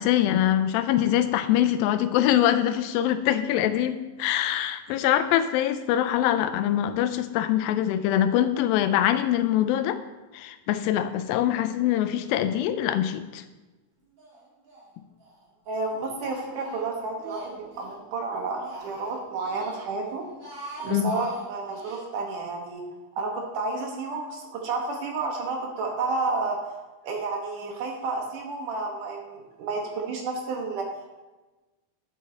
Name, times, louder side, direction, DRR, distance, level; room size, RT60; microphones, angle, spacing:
voice 1, 0.0-10.0 10.3-13.4 20.9-21.1, left 11 dB, 90° left, 10 dB, 2.4 m, -24 dB
Speech, 14.2-14.9 15.2-18.0 18.4-19.9 20.3-22.0, right 2 dB, 40° right, 2.0 m, -43 dB
voice 2, 15.7-20.2 20.8-22.8 23.2-26.7 27.0-31.2, right 3 dB, 70° right, 1 dB, 2.6 m, -31 dB
10.5 x 5.6 x 4.3 m, 1.2 s
omnidirectional pair, 4.1 m